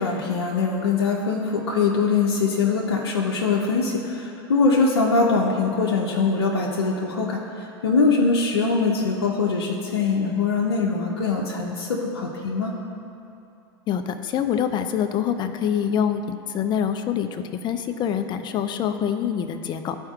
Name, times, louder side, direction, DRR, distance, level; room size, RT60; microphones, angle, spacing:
voice 1, 0.0-12.7, left 4 dB, 90° left, -1 dB, 0.7 m, -22 dB
voice 2, 13.9-20.0, left 8 dB, 35° left, 8 dB, 0.5 m, -25 dB
13.0 x 4.5 x 2.4 m, 2.6 s
hypercardioid pair, 105°, 13 cm